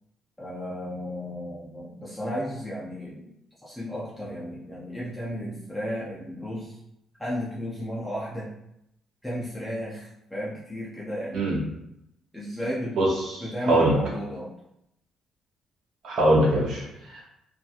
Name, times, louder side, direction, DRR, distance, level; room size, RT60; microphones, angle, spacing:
voice 1, 0.4-3.3 3.6-6.8 7.2-8.5 9.2-11.4 12.3-13.0 13.4-14.5, equal, ahead, -8 dB, 0.5 m, -33 dB
voice 2, 13.0-14.0 16.0-17.3, right 1 dB, 60° right, -4 dB, 0.6 m, -23 dB
2.8 x 2.3 x 2.4 m, 0.82 s
cardioid pair, 150°, 0 cm